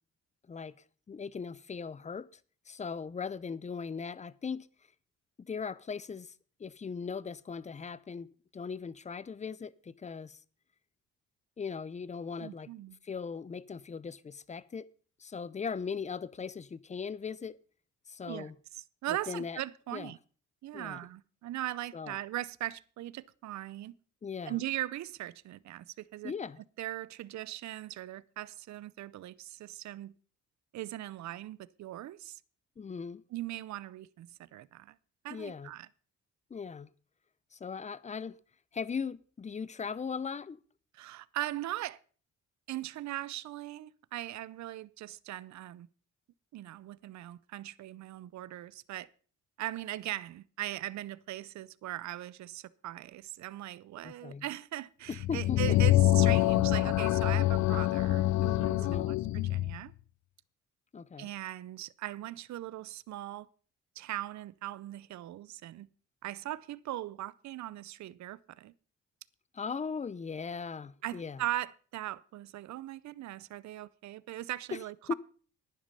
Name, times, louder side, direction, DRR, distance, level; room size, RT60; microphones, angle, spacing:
voice 1, 1.1-2.3 2.7-4.7 5.4-6.3 6.6-10.4 11.6-12.7 13.0-14.9 15.2-17.6 18.1-18.5 19.3-19.6 19.9-20.1 20.7-21.0 21.9-22.1 24.2-24.6 26.2-26.6 32.8-33.2 35.3-35.7 36.5-36.9 37.5-38.4 38.7-40.6 54.0-54.4 55.3-55.8 58.8-59.2 60.9-61.3 69.5-71.4 74.7-74.8 75.1-75.2, left 5 dB, 25° left, 0.6 m, -38 dB
voice 2, 12.4-13.0 18.3-20.2 20.6-23.9 24.5-26.3 26.8-30.1 30.7-32.4 33.3-35.0 35.2-35.9 40.9-42.0 42.7-45.9 46.5-49.1 49.6-59.9 61.2-63.5 64.0-65.9 66.2-68.7 71.0-75.1, right 14 dB, 65° right, 0.6 m, -40 dB
sound 1, 55.1-59.8, left 16 dB, 65° left, 0.5 m, -26 dB
10.5 x 10.5 x 5.5 m
cardioid pair, 90°, 30 cm